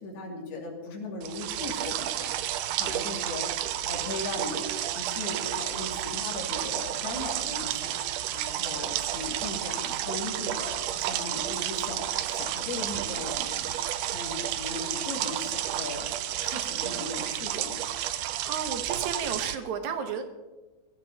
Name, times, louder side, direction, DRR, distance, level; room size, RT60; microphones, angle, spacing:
voice 1, 0.0-2.3 2.8-3.4 3.9-16.1 16.4-17.8, left 3 dB, 85° left, -1 dB, 4.5 m, -38 dB
sound 1, 1.2-19.6, right 12 dB, 90° right, 1.7 m, -31 dB
voice 2, 18.4-20.2, right 6 dB, 65° right, 7 dB, 2.0 m, -32 dB
22.5 x 15.5 x 2.9 m, 1.2 s
omnidirectional pair, 4.4 m